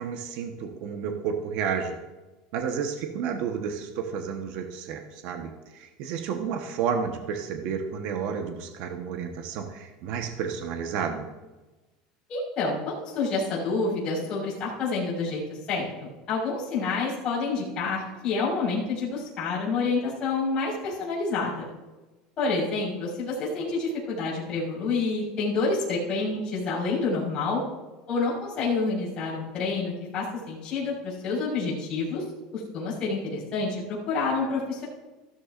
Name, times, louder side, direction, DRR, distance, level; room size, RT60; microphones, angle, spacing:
voice 1, 0.0-2.0 2.5-11.3, right 6 dB, 60° right, 4 dB, 1.1 m, -31 dB
voice 2, 12.3-21.6 22.4-27.6 28.1-32.2 32.5-34.8, left 3 dB, 35° left, -6 dB, 4.6 m, -28 dB
14.5 x 13.0 x 2.5 m, 1.1 s
cardioid pair, 155°, 3 cm